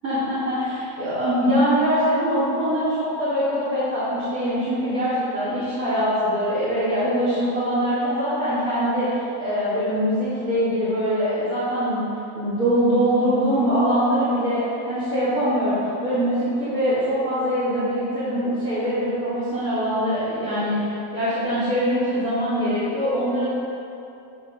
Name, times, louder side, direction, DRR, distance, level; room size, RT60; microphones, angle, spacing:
voice 1, 0.0-12.1 12.3-14.6 14.9-23.4, equal, 55° right, -14 dB, 2.8 m, -23 dB
9.3 x 5.5 x 5.0 m, 2.7 s
omnidirectional pair, 1.9 m